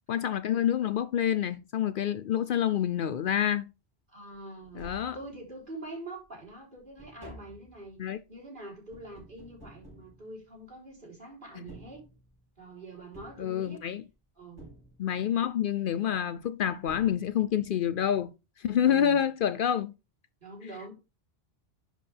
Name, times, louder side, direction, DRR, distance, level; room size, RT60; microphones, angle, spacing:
voice 1, 0.1-3.7 4.8-5.2 8.0-8.2 11.6-11.7 13.4-14.0 15.0-18.3 18.6-19.9, left 9 dB, 65° left, 0.7 m, -27 dB
voice 2, 4.1-4.8 5.1-12.0 12.6-13.8 14.4-14.7 18.8-19.2 20.4-20.9, right 2 dB, 55° right, 4.1 m, -45 dB
Tap, 4.3-4.4 4.6-5.7 6.2-10.9 11.5-12.6 13.1-14.1 14.6-15.4 16.4-16.5 16.9-17.7 18.0-18.1, right 1 dB, 25° right, 4.6 m, -52 dB
10.5 x 5.1 x 3.4 m
omnidirectional pair, 1.0 m